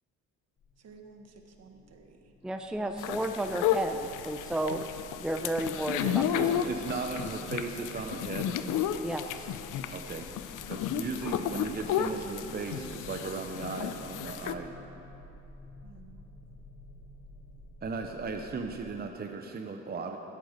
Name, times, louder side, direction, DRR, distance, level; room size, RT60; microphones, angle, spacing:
sound 1, 0.6-18.8, left 1 dB, 45° left, 1.3 m, -52 dB
voice 1, 0.8-2.3 11.9-12.3 12.6-14.2 15.8-16.2, right 4 dB, 55° right, 4 dB, 1.4 m, -53 dB
voice 2, 2.4-4.8 5.2-6.2 9.0-9.6, right 1 dB, ahead, 6 dB, 0.5 m, -32 dB
sound 2, 3.0-14.5, left 9 dB, 85° left, 0.6 m, -33 dB
voice 3, 6.0-8.6 9.9-10.3 10.7-14.7 17.8-20.2, right 4 dB, 30° right, 4 dB, 0.7 m, -36 dB
12.0 x 8.4 x 6.5 m, 2.9 s
cardioid pair, 90°, 30 cm